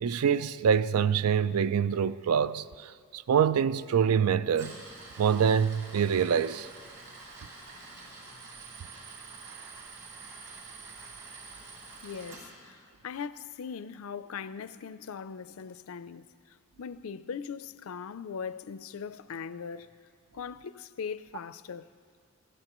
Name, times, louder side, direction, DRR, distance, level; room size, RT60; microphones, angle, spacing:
voice 1, 0.0-4.8 5.2-6.7, right 7 dB, 90° right, 0.4 m, -25 dB
Tools, 4.4-12.4, right 3 dB, 60° right, 5.3 m, -47 dB
voice 2, 12.0-19.9 20.3-21.9, left 6 dB, 70° left, 0.4 m, -40 dB
28.0 x 16.5 x 3.0 m
head